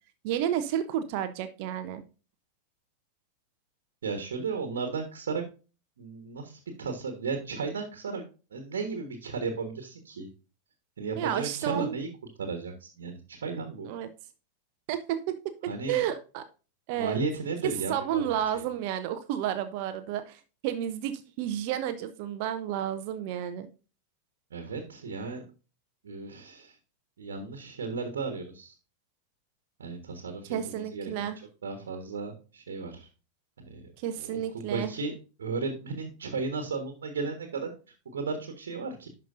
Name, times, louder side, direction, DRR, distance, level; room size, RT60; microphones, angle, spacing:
voice 1, 0.2-2.0 11.2-12.0 13.8-14.1 14.9-15.4 15.9-16.4 16.9-17.2 17.9-23.7 30.5-31.4 34.0-34.9, right 10 dB, 45° right, 10 dB, 0.7 m, -31 dB
voice 2, 4.0-5.4 6.0-8.2 8.5-10.3 11.0-12.1 12.4-13.9 15.7-16.0 16.9-18.2 18.5-18.6 24.5-25.4 26.0-26.7 27.2-28.7 29.8-31.3 31.6-33.1 33.6-33.8 34.1-37.7 38.0-39.1, right 4 dB, 65° right, 5 dB, 1.4 m, -34 dB
11.0 x 5.3 x 2.6 m, 0.33 s
figure-of-eight pair, 90°, 0 cm